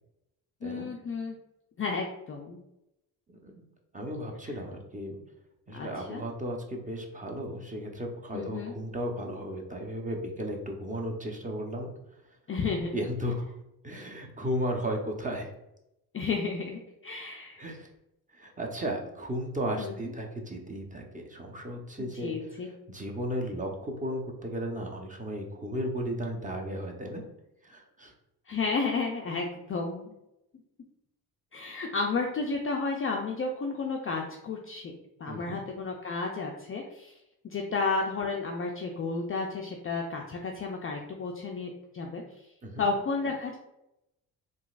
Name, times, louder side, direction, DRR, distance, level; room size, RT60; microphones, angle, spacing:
voice 1, 0.6-1.4 1.8-2.6 4.4-4.5 5.7-6.2 8.3-8.7 12.5-12.9 16.1-17.7 19.8-20.0 22.0-22.7 28.5-30.2 31.5-34.9 35.2-37.1 37.4-42.2 42.8-43.6, left 4 dB, 30° left, 0 dB, 0.4 m, -32 dB
voice 2, 3.3-3.6 3.9-5.2 5.7-11.9 12.9-13.4 13.8-15.5 17.6-17.9 18.3-22.3 22.9-27.2 27.6-28.1 35.3-35.6 42.6-42.9, equal, 15° right, 1 dB, 0.8 m, -35 dB
3.8 x 2.5 x 2.4 m, 0.87 s
hypercardioid pair, 55°, 45 cm